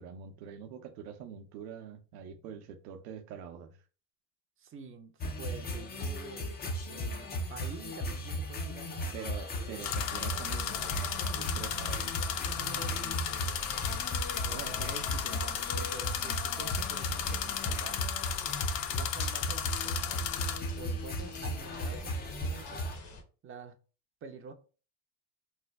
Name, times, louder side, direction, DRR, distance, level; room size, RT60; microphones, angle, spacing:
voice 1, 0.0-3.8 9.1-12.2 14.4-14.8, right 7 dB, 75° right, 0.7 m, -45 dB
voice 2, 4.6-6.6 6.9-9.3 12.5-13.8 14.4-18.1 18.9-20.3 20.8-22.9 23.4-23.7 24.2-24.5, right 5 dB, 25° right, 0.5 m, -47 dB
sound 1, 5.2-23.0, equal, 20° left, 0.5 m, -36 dB
sound 2, 6.0-6.1 9.8-20.6, left 10 dB, 85° left, 0.6 m, -35 dB
sound 3, 10.1-23.2, left 2 dB, 35° left, 1.0 m, -47 dB
3.2 x 2.1 x 3.4 m
supercardioid pair, 95°, 48 cm